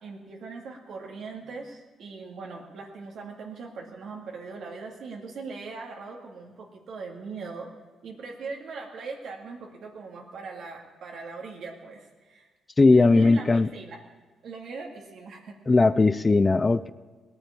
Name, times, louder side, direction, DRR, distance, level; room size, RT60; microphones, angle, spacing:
voice 1, 0.0-7.7 8.0-12.5 12.9-14.0 14.4-15.6, right 4 dB, 70° right, 0 dB, 2.2 m, -40 dB
voice 2, 12.8-13.7 15.7-16.9, left 3 dB, 25° left, 15 dB, 0.5 m, -19 dB
18.0 x 9.6 x 8.5 m, 1.3 s
cardioid pair, 75°, 0 cm